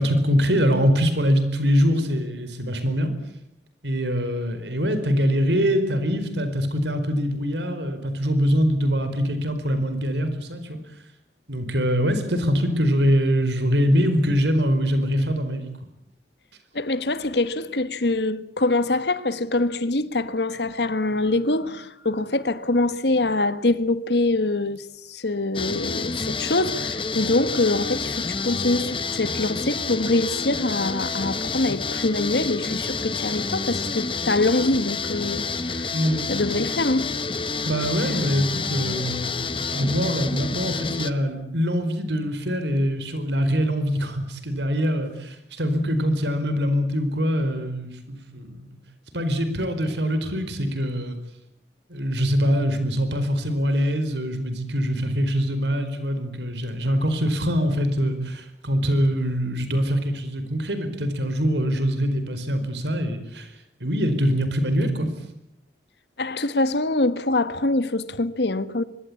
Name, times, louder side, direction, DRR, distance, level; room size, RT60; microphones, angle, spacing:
voice 1, 0.0-3.1 3.8-10.8 11.5-15.7 35.9-36.3 37.6-48.8 49.1-51.2 51.9-63.5 63.8-65.1, equal, 80° right, 4.5 m, -23 dB
voice 2, 16.7-35.9 36.3-37.2 38.0-38.2 66.2-68.8, left 2 dB, 70° left, 1.5 m, -24 dB
sound 1, 25.5-41.1, left 4 dB, 30° left, 1.2 m, -29 dB
24.5 x 22.5 x 8.6 m
head